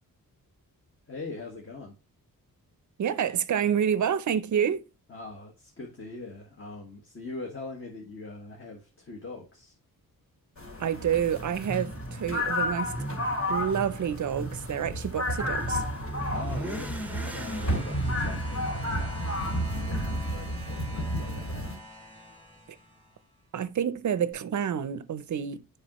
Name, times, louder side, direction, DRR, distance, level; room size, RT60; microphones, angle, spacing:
voice 1, 1.1-2.0 5.1-9.7 16.3-21.7, left 3 dB, 35° left, 1.3 m, -42 dB
voice 2, 3.0-4.8 10.8-12.9 13.5-15.8 22.7-22.8 23.5-25.6, right 8 dB, 55° right, 0.5 m, -28 dB
sound 1, 10.6-21.8, equal, 50° left, 2.8 m, -32 dB
Motorcycle / Accelerating revving vroom, 11.2-20.0, right 1 dB, 5° right, 0.6 m, -39 dB
sound 2, 15.5-23.3 24.3-24.4, equal, 15° left, 2.6 m, -46 dB
7.1 x 4.9 x 2.9 m
wide cardioid pair, 110°, 36 cm